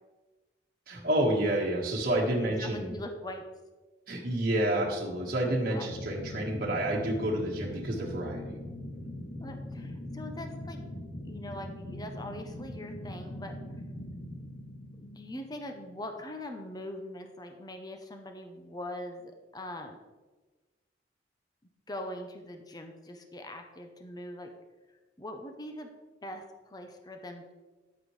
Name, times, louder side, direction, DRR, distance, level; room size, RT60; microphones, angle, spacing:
voice 1, 0.9-2.9 4.1-8.6, right 1 dB, 50° right, -2 dB, 1.5 m, -29 dB
voice 2, 2.4-3.4 5.7-5.9 9.4-10.8 11.2-13.6 14.9-20.0 21.9-24.5 25.2-25.9 26.2-27.5, left 1 dB, 20° left, 5 dB, 0.7 m, -42 dB
sound 1, 5.1-16.0, left 1 dB, 45° left, 2.4 m, -42 dB
9.7 x 8.7 x 3.2 m, 1.2 s
head